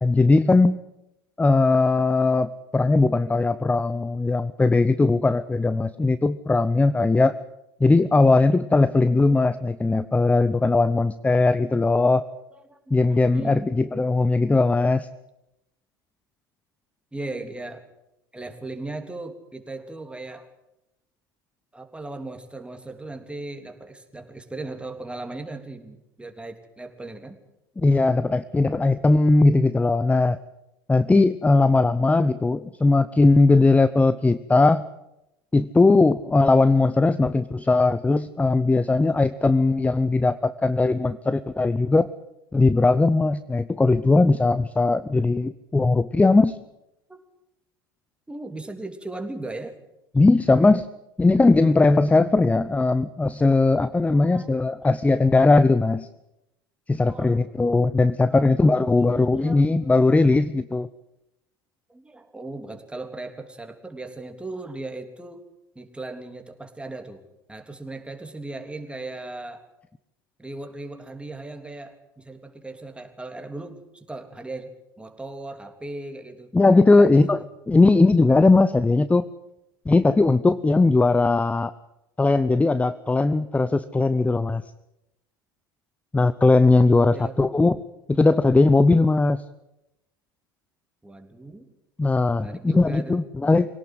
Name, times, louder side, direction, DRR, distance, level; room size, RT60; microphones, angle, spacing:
voice 1, 0.0-0.8 1.4-7.3 7.8-12.2 12.9-15.1 27.8-30.4 30.9-34.9 35.5-42.1 42.5-46.6 50.1-50.9 51.2-56.1 56.9-60.9 76.5-77.4 77.7-79.3 79.9-81.7 82.2-84.6 86.1-87.8 88.1-89.4 92.0-93.7, left 3 dB, 10° left, 15 dB, 0.8 m, -19 dB
voice 2, 12.5-13.7 17.1-17.8 18.3-20.5 21.7-27.4 33.6-33.7 47.1-47.2 48.3-49.7 54.1-54.5 57.1-57.4 58.3-60.4 61.9-65.4 65.7-67.2 67.5-69.7 70.4-76.5 76.9-77.2 86.9-87.4 91.0-91.6 92.4-93.2, right 2 dB, 10° right, 5 dB, 3.3 m, -37 dB
24.5 x 18.0 x 7.9 m, 0.88 s
hypercardioid pair, 70°, 12 cm